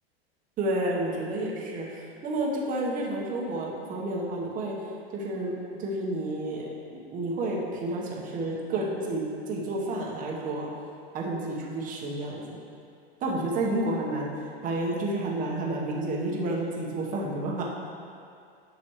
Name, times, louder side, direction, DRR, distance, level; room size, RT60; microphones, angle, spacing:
voice 1, 0.6-4.8 5.1-10.7 11.1-12.4 13.2-14.3 14.6-17.7, right 2 dB, 25° right, -3 dB, 1.1 m, -30 dB
9.5 x 6.2 x 3.1 m, 2.4 s
supercardioid pair, 135°, 32 cm